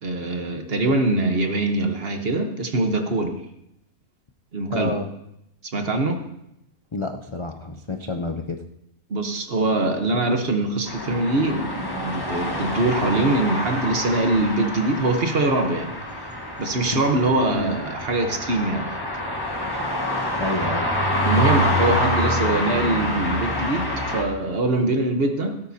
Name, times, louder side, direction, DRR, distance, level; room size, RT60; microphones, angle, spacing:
voice 1, 0.0-3.4 4.5-5.0 5.7-6.2 9.1-15.9 16.6-19.0 21.2-25.6, right 2 dB, 45° right, 5 dB, 1.2 m, -23 dB
voice 2, 4.7-5.1 6.9-8.6 16.9-17.0 17.5-17.8 20.4-20.9, left 2 dB, 45° left, 4 dB, 0.4 m, -29 dB
sound 1, 10.9-24.2, left 1 dB, 15° left, 1.5 m, -26 dB
17.0 x 12.5 x 2.8 m, 0.82 s
omnidirectional pair, 1.6 m